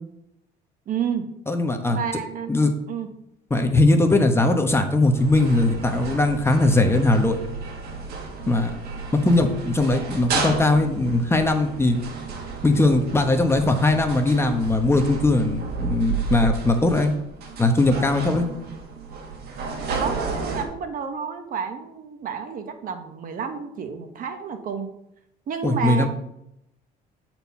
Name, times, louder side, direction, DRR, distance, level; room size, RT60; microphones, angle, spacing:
voice 1, 0.9-1.2 1.9-2.5 2.9-3.1 19.9-24.9 25.5-26.1, right 7 dB, 55° right, 7 dB, 1.2 m, -30 dB
voice 2, 1.5-2.0 2.5-2.7 3.5-7.4 8.5-8.7 9.2-12.0 12.6-17.1 17.6-18.5 25.6-26.1, left 2 dB, 15° left, 5 dB, 1.1 m, -20 dB
sound 1, 5.1-20.6, right 4 dB, 70° right, 1.8 m, -32 dB
9.0 x 4.5 x 5.6 m, 0.79 s
cardioid pair, 110°, 17 cm